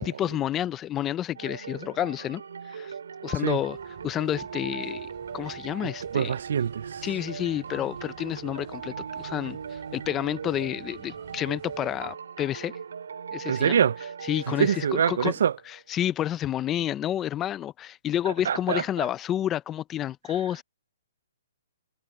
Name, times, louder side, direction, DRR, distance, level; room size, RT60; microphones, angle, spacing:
voice 1, 0.0-2.9 3.2-3.8 4.0-5.1 5.3-6.3 7.0-12.7 13.3-13.8 14.2-15.3 15.7-20.6, left 11 dB, 15° left, 0.5 m, -30 dB
sound 1, 1.3-15.8, right 6 dB, 80° right, 3.0 m, -39 dB
sound 2, 3.6-12.2, right 21 dB, 30° right, 3.2 m, -52 dB
voice 2, 6.1-7.1 13.5-14.0 14.6-15.5 18.5-18.8, right 8 dB, 60° right, 0.4 m, -24 dB
hypercardioid pair, 170°, 0 cm